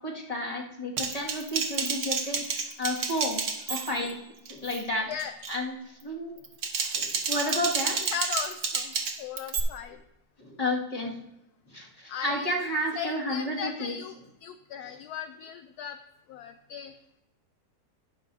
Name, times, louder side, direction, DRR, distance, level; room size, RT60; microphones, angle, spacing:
voice 1, 0.0-2.5 2.8-4.2 4.5-5.1 5.5-6.3 6.8-8.0 10.4-11.2 11.7-13.9 14.8-15.0, left 1 dB, 20° left, -3 dB, 2.0 m, -31 dB
Typing, 1.0-4.1 4.5-4.8 5.2-5.6 6.4-9.6, right 5 dB, 75° right, 1.8 m, -30 dB
voice 2, 8.0-10.0 12.1-12.5 12.9-16.0 16.3-16.9, left 8 dB, 75° left, 8 dB, 1.0 m, -37 dB
20.0 x 6.7 x 2.7 m, 0.88 s
omnidirectional pair, 1.8 m